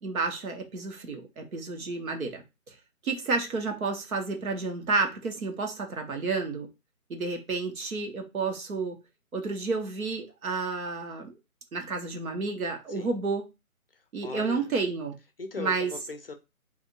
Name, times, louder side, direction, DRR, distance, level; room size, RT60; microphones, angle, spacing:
voice 1, 0.0-2.7 3.0-6.7 7.1-9.0 9.3-11.4 11.7-13.4 14.1-15.2 15.6-15.9, right 4 dB, 75° right, 1.2 m, -31 dB
voice 2, 13.9-14.7 15.4-16.3, left 4 dB, 45° left, 0.5 m, -39 dB
2.6 x 2.5 x 4.0 m
hypercardioid pair, 160°, 43 cm